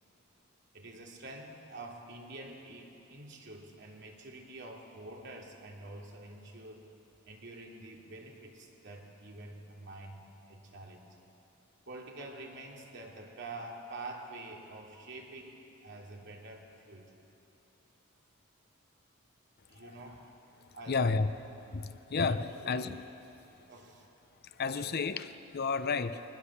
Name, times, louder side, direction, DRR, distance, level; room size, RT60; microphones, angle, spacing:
voice 1, 0.7-6.9 7.2-10.2 10.4-11.2 11.9-15.6 15.8-17.1 19.7-20.3 20.7-21.2 22.2-22.8 23.7-24.1 24.7-24.8, right 2 dB, 60° right, 0 dB, 2.8 m, -47 dB
voice 2, 20.9-21.3 21.7-23.0 24.6-26.2, left 4 dB, 50° left, 11 dB, 0.7 m, -31 dB
23.5 x 20.0 x 7.3 m, 2.9 s
head